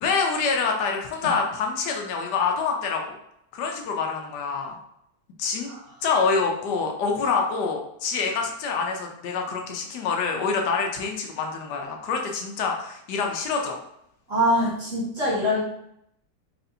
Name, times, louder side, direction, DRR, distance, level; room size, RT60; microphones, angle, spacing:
voice 1, 0.0-3.2 3.5-4.8 5.4-5.7 6.0-13.8, left 5 dB, 80° left, 2 dB, 1.2 m, -26 dB
voice 2, 14.3-15.6, equal, 50° right, -9 dB, 1.5 m, -23 dB
4.2 x 3.2 x 2.7 m, 0.76 s
omnidirectional pair, 1.8 m